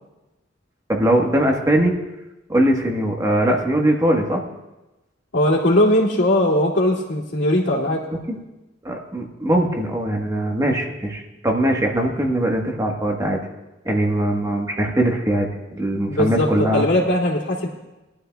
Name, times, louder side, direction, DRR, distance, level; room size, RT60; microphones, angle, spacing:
voice 1, 0.9-1.9 2.5-4.4 8.1-8.4 8.8-13.4 13.8-15.5 15.7-16.9, right 1 dB, 15° right, 0 dB, 1.3 m, -21 dB
voice 2, 5.3-8.0 16.1-17.7, left 1 dB, 70° left, -3 dB, 2.4 m, -19 dB
21.0 x 12.0 x 2.3 m, 1.0 s
head